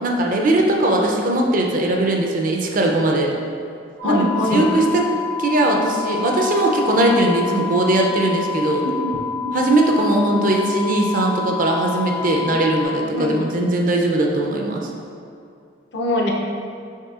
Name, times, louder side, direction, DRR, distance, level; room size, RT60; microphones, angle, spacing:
voice 1, 0.0-3.3 4.0-4.2 4.5-5.0 5.4-8.8 9.5-14.9, right 1 dB, 45° right, 1 dB, 0.4 m, -19 dB
voice 2, 4.0-4.7 8.8-9.1 9.4-9.6 13.1-13.4 15.9-16.3, left 1 dB, 60° left, -1 dB, 0.6 m, -22 dB
sound 1, 4.0-12.8, left 6 dB, 85° right, 1.4 m, -28 dB
5.5 x 3.3 x 2.4 m, 2.4 s
head